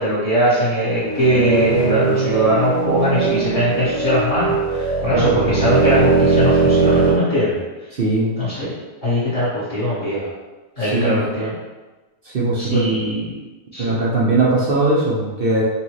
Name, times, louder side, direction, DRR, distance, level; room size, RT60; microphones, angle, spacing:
voice 1, 0.0-7.6 8.4-8.7 9.0-10.3 10.8-11.5 12.5-13.3 13.7-13.9, equal, 30° left, -11 dB, 1.4 m, -20 dB
sound 1, 1.0-7.2, right 4 dB, 50° left, 0.3 m, -19 dB
voice 2, 7.9-8.3 10.8-11.2 12.2-13.0 13.8-15.6, right 2 dB, 60° right, -5 dB, 0.6 m, -19 dB
5.7 x 2.3 x 3.0 m, 1.2 s
omnidirectional pair, 1.6 m